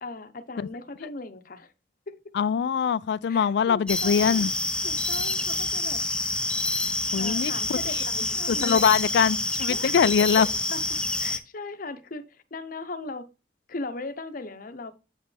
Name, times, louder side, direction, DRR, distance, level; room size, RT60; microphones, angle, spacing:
voice 1, 0.0-1.7 2.1-2.2 3.3-4.5 4.8-6.0 7.2-9.0 9.7-10.8 11.1-13.3 13.7-14.9, left 3 dB, 50° left, 0.8 m, -38 dB
voice 2, 2.4-4.5 7.1-7.8 8.5-10.5, left 7 dB, 70° left, 0.3 m, -23 dB
sound 1, 3.9-11.4, left 2 dB, 5° left, 0.6 m, -27 dB
8.6 x 5.2 x 3.3 m
head